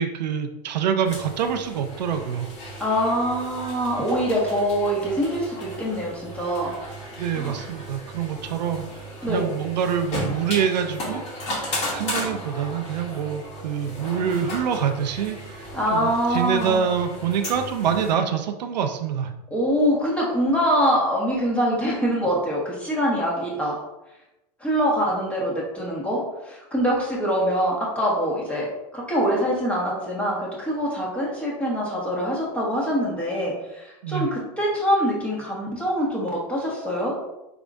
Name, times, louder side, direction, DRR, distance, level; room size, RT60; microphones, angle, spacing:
voice 1, 0.0-2.5 7.2-11.2 11.6-19.3 34.0-34.3, right 7 dB, 85° right, 6 dB, 0.6 m, -26 dB
sound 1, 1.0-18.1, equal, 35° left, 1.5 m, -35 dB
voice 2, 2.8-6.7 7.3-7.5 9.2-9.5 15.7-16.8 19.5-23.8 24.6-26.2 26.4-28.7 28.9-37.1, equal, 5° left, -5 dB, 1.4 m, -24 dB
4.8 x 3.5 x 2.5 m, 0.94 s
hypercardioid pair, 130°, 21 cm